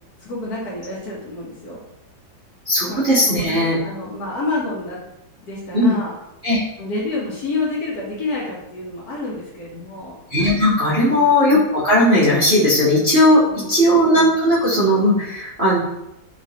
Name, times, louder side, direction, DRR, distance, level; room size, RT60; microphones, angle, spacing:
voice 1, 0.2-1.8 2.8-3.0 3.3-5.0 5.4-6.2 6.8-10.2 11.0-11.3 13.5-13.9, left 2 dB, 60° left, -4 dB, 1.1 m, -29 dB
voice 2, 2.6-3.8 5.7-5.9 6.4-6.6 10.3-13.4 13.7-15.8, left 1 dB, 50° right, -10 dB, 0.7 m, -16 dB
3.2 x 3.0 x 2.7 m, 0.87 s
omnidirectional pair, 2.2 m